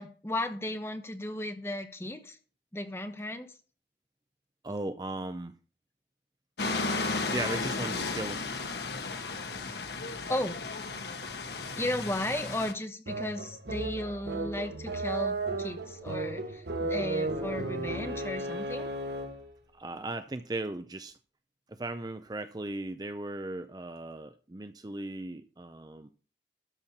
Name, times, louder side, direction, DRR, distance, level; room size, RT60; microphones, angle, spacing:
voice 1, 0.0-2.4 2.7-3.6 10.3-10.6 11.8-18.9, left 1 dB, 15° left, 7 dB, 1.1 m, -35 dB
voice 2, 4.6-5.5 7.3-8.4 19.8-21.1 21.7-26.1, right 2 dB, 20° right, 10 dB, 0.5 m, -37 dB
sound 1, 6.6-12.7, left 3 dB, 75° left, 1.4 m, -34 dB
sound 2, 13.1-19.5, right 2 dB, 75° right, 1.6 m, -34 dB
13.0 x 4.5 x 7.2 m, 0.39 s
head